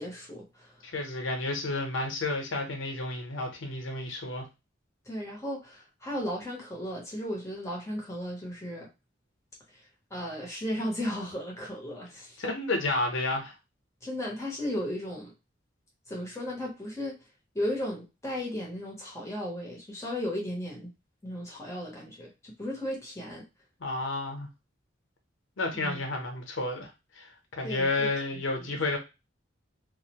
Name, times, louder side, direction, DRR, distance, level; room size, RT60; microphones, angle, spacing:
voice 1, 0.0-0.8 5.1-8.9 10.1-12.4 14.0-15.3 16.1-17.2 17.5-20.9 21.2-23.4 25.7-26.0 27.6-28.8, equal, 15° left, 0.7 m, -35 dB
voice 2, 0.8-4.5 12.4-13.5 23.8-24.5 25.6-26.9 27.2-29.0, left 2 dB, 90° left, 0.7 m, -31 dB
2.4 x 2.0 x 2.8 m
head